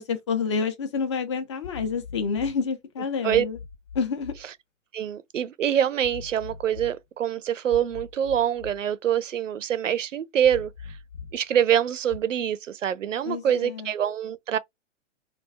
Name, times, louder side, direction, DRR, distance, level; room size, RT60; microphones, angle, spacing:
voice 1, 0.0-3.6 3.9-4.3 13.3-13.9, left 5 dB, 25° left, 0.4 m, -28 dB
sound 1, 1.6-2.6 3.3-4.4 6.0-7.0 7.7-8.8 10.4-11.4 12.1-12.2, left 6 dB, 80° left, 0.9 m, -42 dB
voice 2, 4.9-11.0 11.3-14.6, right 9 dB, 80° right, 0.5 m, -25 dB
2.4 x 2.2 x 3.2 m
figure-of-eight pair, 115°, 37 cm